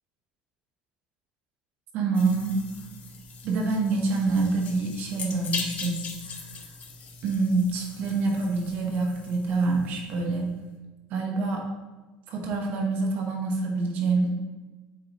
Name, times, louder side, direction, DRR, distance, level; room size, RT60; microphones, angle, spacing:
voice 1, 1.9-2.6 3.4-6.4 7.2-10.5 11.1-11.6 12.3-14.3, right 3 dB, 60° right, 1 dB, 1.2 m, -26 dB
sound 1, 2.1-10.3, left 5 dB, 45° left, 0.9 m, -40 dB
7.9 x 4.6 x 3.1 m, 1.2 s
supercardioid pair, 100°, 3 cm